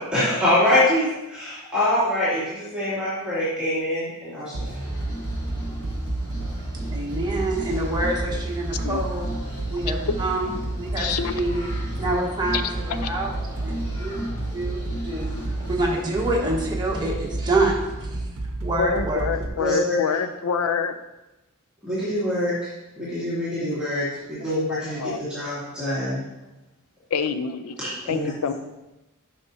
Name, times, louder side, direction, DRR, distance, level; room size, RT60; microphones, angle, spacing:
voice 1, 0.0-4.8 19.6-20.2 21.8-22.5 23.0-26.2 27.8-28.5, left 1 dB, 5° right, -12 dB, 2.4 m, -25 dB
sound 1, 4.5-19.5, right 2 dB, 65° right, 0.8 m, -31 dB
sound 2, 4.6-18.3, equal, 20° left, 2.7 m, -36 dB
voice 2, 6.9-9.3 9.7-10.5 10.8-13.3 13.6-14.2 14.5-15.3 15.7-18.2 18.6-19.3, right 2 dB, 20° right, -2 dB, 1.3 m, -27 dB
voice 3, 11.0-11.3 12.5-12.6 13.0-13.1 18.8-21.0 24.0-24.1 24.7-25.2 27.1-27.8 28.1-28.5, left 6 dB, 85° left, 10 dB, 0.5 m, -26 dB
9.6 x 5.8 x 2.7 m, 1.0 s
head